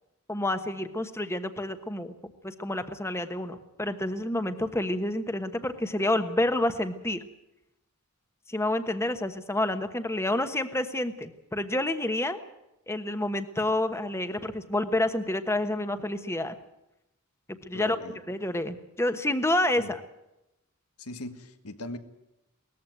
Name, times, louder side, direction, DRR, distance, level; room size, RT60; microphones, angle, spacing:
voice 1, 0.3-2.1 2.4-7.2 8.5-12.4 12.9-16.5 17.7-18.0 18.3-20.0, left 1 dB, 10° left, 10 dB, 1.2 m, -28 dB
voice 2, 17.7-18.2 19.8-19.9 21.0-22.0, left 2 dB, 90° left, 9 dB, 1.7 m, -39 dB
19.5 x 14.5 x 9.3 m, 0.89 s
head